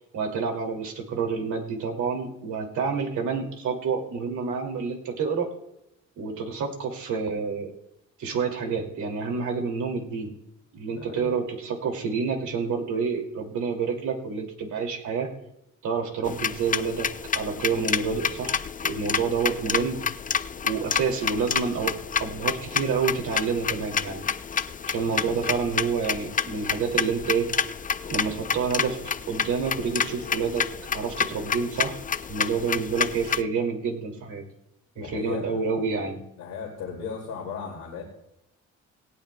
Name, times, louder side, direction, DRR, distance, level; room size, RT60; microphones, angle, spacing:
voice 1, 0.1-5.5 6.2-7.7 8.2-10.3 10.7-15.3 15.8-17.1 17.3-20.0 20.6-24.3 24.9-27.5 28.1-30.7 30.9-32.0 32.3-34.4 35.0-36.2, right 5 dB, 75° right, 3 dB, 2.4 m, -28 dB
voice 2, 10.9-11.3 25.0-25.4 35.0-35.6 36.4-38.0, left 6 dB, 90° left, -1 dB, 2.3 m, -36 dB
Small clock fast tick tock, 16.3-33.4, left 7 dB, 25° left, 0.5 m, -29 dB
18.0 x 17.0 x 2.2 m, 0.86 s
cardioid pair, 90°, 30 cm